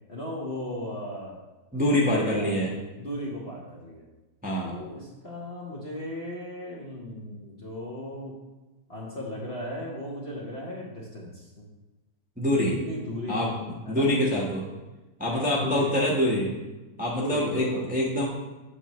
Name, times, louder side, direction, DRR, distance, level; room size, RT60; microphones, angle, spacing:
voice 1, 0.1-1.4 1.9-2.6 3.0-4.1 4.6-8.4 8.9-11.7 12.5-13.5 13.8-14.1 15.3-15.9 17.1-17.9, left 1 dB, 40° left, -4 dB, 1.1 m, -36 dB
voice 2, 1.7-2.7 4.4-4.7 12.4-12.7 13.3-14.6 15.2-16.5 17.0-18.3, left 1 dB, 5° right, -4 dB, 0.9 m, -25 dB
8.1 x 5.8 x 3.0 m, 1.1 s
omnidirectional pair, 2.0 m